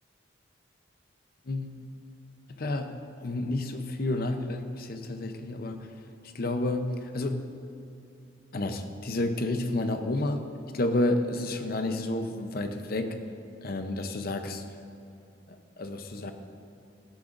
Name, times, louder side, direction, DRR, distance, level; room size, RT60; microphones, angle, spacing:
voice 1, 1.4-1.9 2.5-2.9 3.2-5.9 6.2-7.4 8.5-10.4 10.7-13.2 13.6-14.8 15.5-16.3, left 2 dB, 50° left, 7 dB, 0.7 m, -30 dB
16.0 x 10.0 x 2.6 m, 2.7 s
head